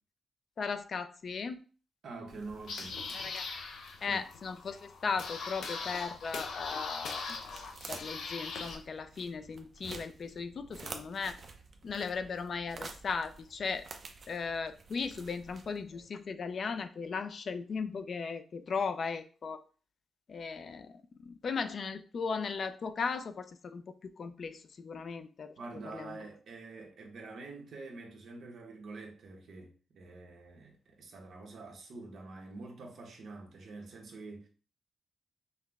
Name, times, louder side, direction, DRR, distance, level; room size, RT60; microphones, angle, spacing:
voice 1, 0.6-1.6 3.1-3.4 4.0-7.4 7.9-11.4 11.8-13.8 14.3-19.6 20.3-25.5 25.8-26.2, left 5 dB, 45° left, 0.3 m, -37 dB
voice 2, 2.0-3.3 4.0-4.3 25.6-34.5, right 3 dB, 65° right, 1.0 m, -46 dB
sound 1, 2.3-8.8, left 4 dB, 85° left, 0.7 m, -41 dB
sound 2, 5.0-16.1, right 4 dB, 40° right, 0.5 m, -50 dB
5.6 x 2.1 x 3.4 m
wide cardioid pair, 155°, 0 cm